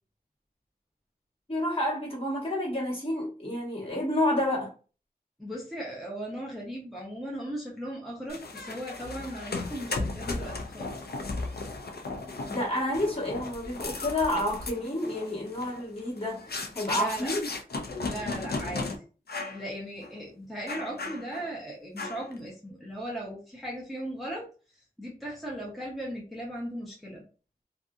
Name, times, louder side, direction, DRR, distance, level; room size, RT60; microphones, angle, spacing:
voice 1, 1.5-4.7 12.5-16.4 16.7-17.4, left 1 dB, 35° left, -6 dB, 1.4 m, -29 dB
voice 2, 5.4-10.9 16.9-17.3 18.0-18.9 19.5-24.4 25.0-27.2, right 1 dB, ahead, -4 dB, 0.8 m, -37 dB
sound 1, 8.3-19.0 19.3-19.6 20.0-20.2 20.7-21.5 22.0-22.4, left 3 dB, 80° left, 0.4 m, -36 dB
2.5 x 2.5 x 2.4 m, 0.37 s
wide cardioid pair, 50°, 16 cm